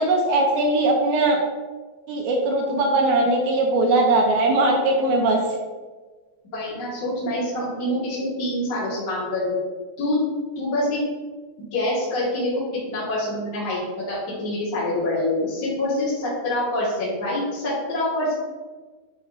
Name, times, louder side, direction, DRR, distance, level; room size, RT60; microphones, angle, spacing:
voice 1, 0.0-1.4 2.1-5.4, right 2 dB, 80° right, 1 dB, 2.3 m, -20 dB
voice 2, 6.5-9.6 10.0-10.2 10.6-11.0 11.7-12.6 12.9-13.8 14.1-18.3, left 1 dB, 45° left, -11 dB, 2.5 m, -25 dB
10.5 x 5.2 x 2.7 m, 1.3 s
omnidirectional pair, 4.9 m